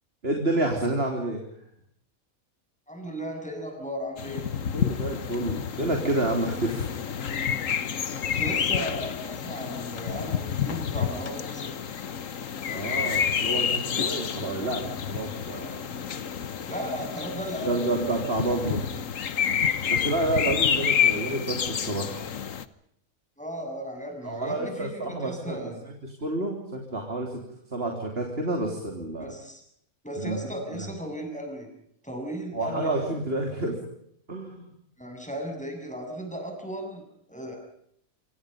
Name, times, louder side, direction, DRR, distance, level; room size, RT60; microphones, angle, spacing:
voice 1, 0.2-1.4 4.7-6.9 12.7-16.0 17.6-18.8 19.3-19.4 19.9-22.3 24.2-25.7 26.0-27.4 27.7-29.3 30.2-30.4 30.7-30.9 32.5-33.8 34.3-34.7, right 2 dB, 45° right, 2 dB, 3.8 m, -29 dB
voice 2, 2.9-4.5 8.2-11.7 16.5-17.9 18.6-18.7 20.9-21.0 23.4-25.8 29.2-29.6 30.0-31.7 32.0-33.1 35.0-37.6, equal, 5° left, 3 dB, 7.6 m, -36 dB
sound 1, 4.2-22.6, left 8 dB, 65° left, 1.5 m, -29 dB
27.0 x 25.0 x 5.3 m, 0.72 s
omnidirectional pair, 1.5 m